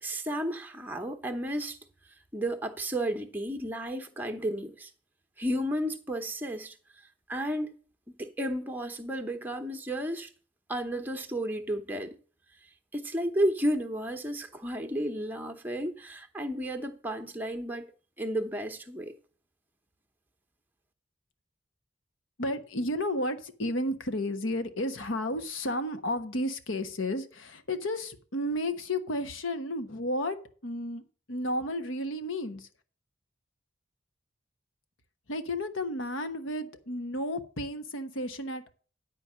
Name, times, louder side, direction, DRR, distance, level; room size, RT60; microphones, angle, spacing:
voice 1, 0.0-1.8 2.3-4.9 5.4-6.7 7.3-7.8 8.2-10.3 10.7-12.2 12.9-17.9 18.2-19.1, right 1 dB, 10° right, 0.9 m, -32 dB
voice 2, 22.4-30.4 30.6-31.0 31.3-32.7 35.3-38.7, left 1 dB, 90° left, 1.2 m, -32 dB
10.0 x 4.5 x 7.4 m
head